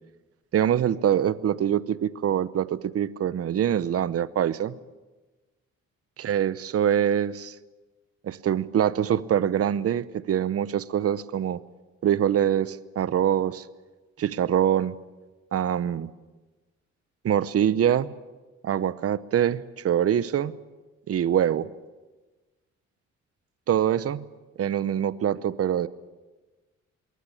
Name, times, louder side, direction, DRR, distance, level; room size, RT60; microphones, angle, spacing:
voice 1, 0.5-4.8 6.2-7.6 8.2-11.6 12.0-13.7 14.2-15.0 15.5-16.1 17.2-18.1 18.6-20.6 21.1-21.7 23.7-24.2 24.6-25.9, right 9 dB, 50° right, 17 dB, 0.9 m, -24 dB
22.0 x 18.0 x 8.5 m, 1.2 s
cardioid pair, 90°, 30 cm